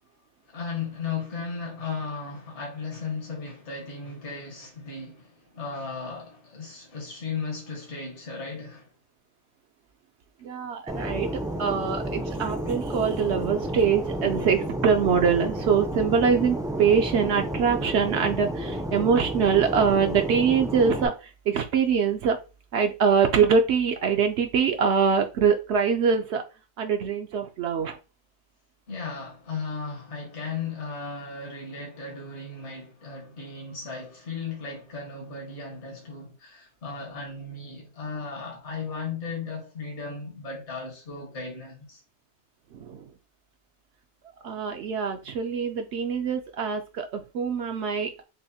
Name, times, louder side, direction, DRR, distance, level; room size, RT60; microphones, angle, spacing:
voice 1, 0.5-8.9 28.9-42.0, left 4 dB, 75° left, 1.6 m, -36 dB
voice 2, 10.4-21.1 21.5-22.4 22.7-26.4 26.8-28.0 42.9-43.0 44.4-48.2, right 6 dB, 75° right, 0.8 m, -24 dB
Fixed-wing aircraft airplane, 10.9-21.1, right 1 dB, 5° right, 0.3 m, -31 dB
6.1 x 2.1 x 2.7 m
omnidirectional pair, 1.2 m